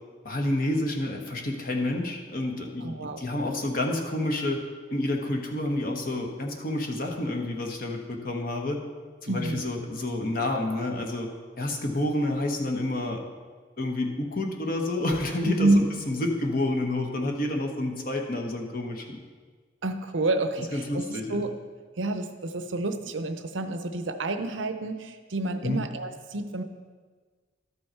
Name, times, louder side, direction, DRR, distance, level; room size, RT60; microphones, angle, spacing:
voice 1, 0.2-4.6 4.9-8.8 9.2-11.3 11.6-13.2 13.8-19.2 20.7-21.4 25.6-25.8, left 1 dB, 50° left, 2 dB, 1.1 m, -29 dB
voice 2, 2.8-3.2 9.3-9.6 15.4-15.8 19.8-21.0 21.3-21.5 22.0-26.6, right 2 dB, 75° right, 8 dB, 0.6 m, -28 dB
12.5 x 5.4 x 4.5 m, 1.5 s
head